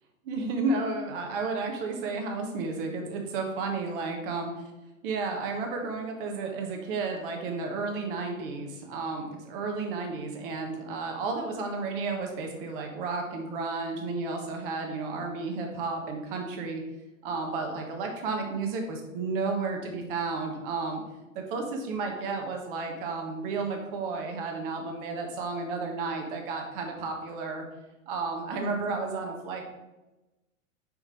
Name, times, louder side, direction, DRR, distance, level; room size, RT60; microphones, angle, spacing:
voice 1, 0.2-4.5 5.0-16.8 17.2-21.0 21.3-27.6 28.1-29.7, right 3 dB, 40° right, 2 dB, 1.3 m, -32 dB
6.0 x 3.7 x 4.3 m, 1.0 s
figure-of-eight pair, 100°, 41 cm